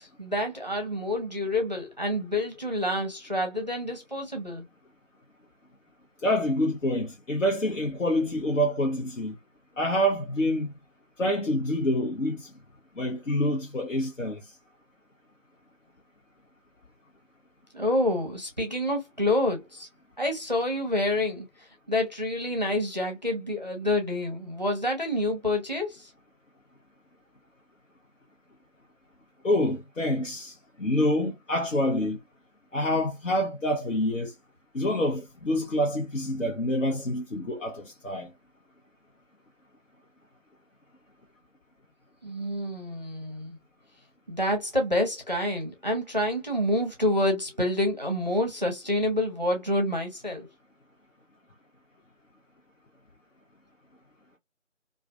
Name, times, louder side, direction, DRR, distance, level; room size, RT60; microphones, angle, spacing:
voice 1, 0.0-4.7 17.7-19.9 20.2-26.1 42.2-43.6 44.3-50.5, left 1 dB, 35° right, 0.6 m, -28 dB
voice 2, 6.2-9.3 9.8-10.7 11.2-12.5 13.0-14.4 29.4-32.2 32.7-34.3 34.7-38.3, left 1 dB, 80° left, 0.8 m, -27 dB
2.4 x 2.4 x 2.2 m
figure-of-eight pair, 165°, 38 cm